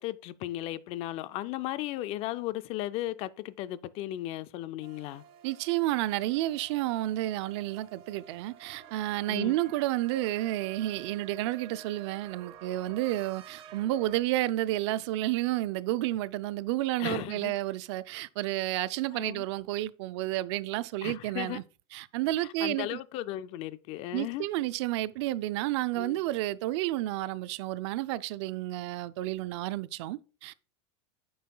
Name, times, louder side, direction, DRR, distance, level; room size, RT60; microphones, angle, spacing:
voice 1, 0.0-5.2 9.3-9.5 17.0-17.5 19.1-19.5 21.0-21.6 22.4-24.4 25.9-26.2, left 15 dB, 35° left, 0.4 m, -36 dB
sound 1, 4.8-14.2, right 8 dB, 35° right, 0.8 m, -50 dB
voice 2, 5.4-21.6 21.9-23.0 24.1-30.5, right 16 dB, 60° right, 0.4 m, -31 dB
9.2 x 5.5 x 2.2 m
supercardioid pair, 150°, 17 cm